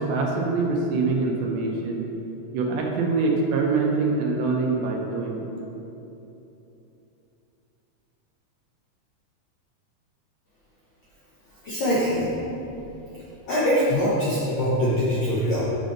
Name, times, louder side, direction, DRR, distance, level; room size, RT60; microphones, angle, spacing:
voice 1, 0.0-2.0 2.5-5.4, right 3 dB, 75° right, 0 dB, 1.6 m, -24 dB
voice 2, 11.6-12.3 13.5-15.7, equal, 75° left, -8 dB, 1.2 m, -23 dB
6.4 x 3.9 x 5.1 m, 3.0 s
omnidirectional pair, 3.6 m